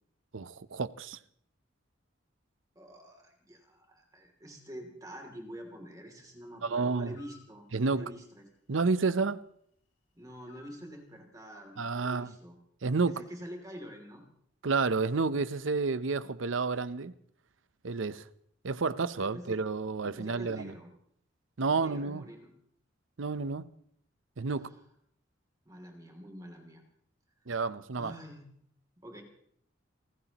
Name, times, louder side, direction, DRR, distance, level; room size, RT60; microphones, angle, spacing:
voice 1, 0.3-1.2 6.6-7.1 7.7-8.1 8.7-9.4 11.8-12.3 12.8-13.2 14.6-17.1 17.8-18.3 18.6-20.7 21.6-22.2 23.2-23.7 24.4-24.7 27.5-28.1, right 4 dB, 85° right, 0.7 m, -30 dB
voice 2, 2.7-8.5 10.1-12.6 13.0-14.2 16.2-16.3 19.2-19.6 20.0-20.9 21.6-22.5 24.5-24.8 25.7-26.8 28.0-28.4 29.0-29.2, equal, 20° right, 2.8 m, -47 dB
sound 1, 7.1-7.5 10.5-10.9, left 7 dB, 85° left, 2.6 m, -57 dB
29.5 x 15.0 x 3.0 m
head